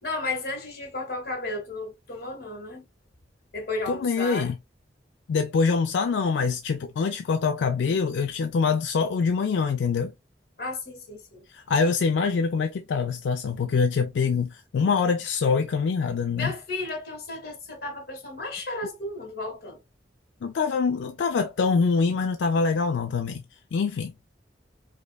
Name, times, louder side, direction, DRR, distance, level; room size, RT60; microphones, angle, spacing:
voice 1, 0.0-2.8 3.5-4.5 10.6-11.4 16.3-19.8, left 2 dB, 60° left, 1.5 m, -33 dB
voice 2, 3.9-4.6 5.3-10.1 11.5-16.5 20.4-23.4 23.7-24.1, left 5 dB, 90° left, 0.4 m, -24 dB
5.1 x 2.1 x 2.2 m
head